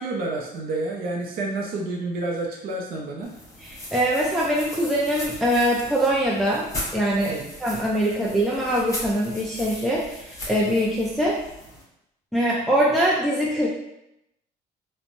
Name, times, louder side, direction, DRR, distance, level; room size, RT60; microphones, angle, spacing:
voice 1, 0.0-3.3 7.3-7.5, right 2 dB, 60° right, 0 dB, 0.5 m, -29 dB
sound 1, 3.2-11.8, left 1 dB, 20° left, 0.8 m, -38 dB
voice 2, 3.6-6.7 6.9-7.3 7.6-11.4 12.3-13.7, equal, ahead, -5 dB, 0.4 m, -23 dB
3.0 x 2.1 x 2.5 m, 0.83 s
cardioid pair, 110°, 17 cm